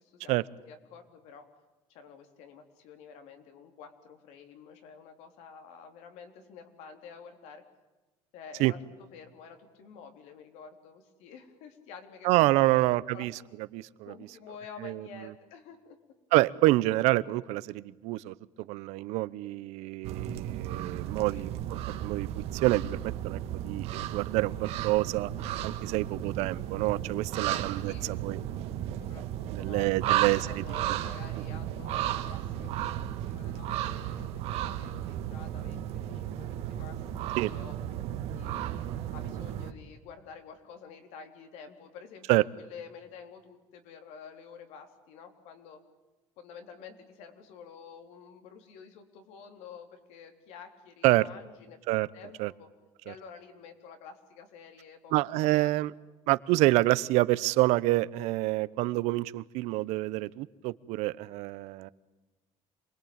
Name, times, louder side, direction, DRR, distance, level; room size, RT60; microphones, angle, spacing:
voice 1, 0.0-1.5 1.9-7.6 8.3-8.8 9.1-13.3 14.0-16.0 21.3-21.5 25.8-26.2 27.5-28.2 29.0-32.9 33.2-38.1 38.3-38.7 39.1-45.8 46.4-52.7 53.0-55.7 56.5-56.6, left 6 dB, 85° left, 6 dB, 3.7 m, -49 dB
voice 2, 12.2-13.3 13.7-14.1 14.8-15.0 16.3-25.3 25.6-28.4 29.5-30.6 37.4-37.5 42.3-42.4 51.0-51.2 51.9-52.1 52.4-52.5 53.1-53.2 55.1-55.9 56.3-61.9, right 19 dB, 85° right, 17 dB, 0.9 m, -27 dB
sound 1, 20.0-39.7, right 12 dB, 65° right, 1.6 m, -34 dB
27.5 x 21.5 x 8.9 m, 1.2 s
cardioid pair, 170°, 11 cm